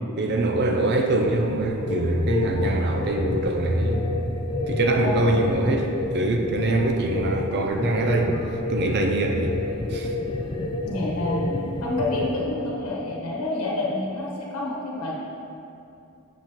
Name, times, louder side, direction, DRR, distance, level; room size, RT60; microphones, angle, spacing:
voice 1, 0.2-4.0 4.7-8.3 8.7-9.5 9.9-10.1, right 2 dB, 50° right, 3 dB, 0.5 m, -23 dB
sound 1, 1.2-12.4, left 2 dB, 25° left, 0.4 m, -29 dB
voice 2, 10.8-11.5 11.8-15.1, left 2 dB, 85° left, -3 dB, 1.2 m, -28 dB
7.7 x 6.8 x 3.0 m, 2.6 s
head